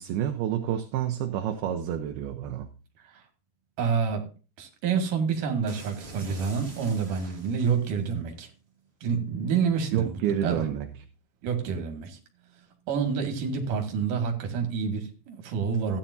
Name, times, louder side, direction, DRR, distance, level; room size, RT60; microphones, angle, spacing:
voice 1, 0.0-2.7 9.9-10.9, right 10 dB, 75° right, 6 dB, 2.7 m, -29 dB
voice 2, 3.8-4.2 4.6-8.5 9.0-10.1 10.4-10.6 11.4-12.2 12.9-16.0, right 6 dB, 60° right, 4 dB, 3.4 m, -28 dB
sound 1, 5.7-8.1, right 1 dB, 20° right, 2.3 m, -46 dB
15.0 x 10.5 x 2.7 m, 0.34 s
omnidirectional pair, 4.7 m